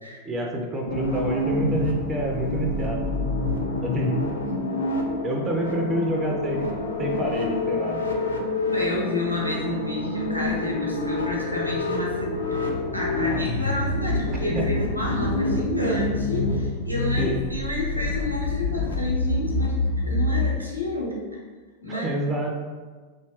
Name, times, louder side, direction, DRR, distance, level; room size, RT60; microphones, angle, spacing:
voice 1, 0.3-3.0 3.8-4.2 5.2-6.7 7.0-8.0 14.5-14.7 16.9-17.4 21.9-22.5, right 1 dB, 20° right, 1 dB, 0.4 m, -27 dB
sound 1, 0.9-20.4, left 2 dB, 70° left, 0.3 m, -27 dB
voice 2, 8.7-19.8 20.1-21.2 21.8-22.1, left 2 dB, 90° right, -3 dB, 0.6 m, -30 dB
2.7 x 2.2 x 2.9 m, 1.4 s
figure-of-eight pair, 90°, 0 cm